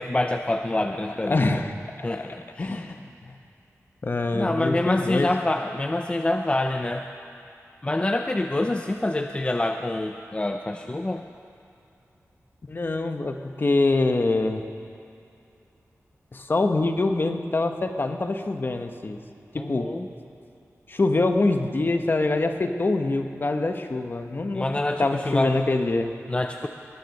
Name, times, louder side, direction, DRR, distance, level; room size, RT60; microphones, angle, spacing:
voice 1, 0.0-1.4 2.0-3.0 4.3-7.1 7.8-11.2 19.5-20.1 24.5-25.6 26.3-26.7, left 2 dB, 20° left, 5 dB, 0.5 m, -26 dB
voice 2, 1.3-1.7 2.1-3.4 4.0-5.3 12.7-14.6 16.3-19.2 19.5-19.9 20.9-24.7 25.0-26.1, left 2 dB, 40° left, 6 dB, 0.9 m, -25 dB
20.0 x 10.0 x 6.6 m, 2.6 s
wide cardioid pair, 120°, 6 cm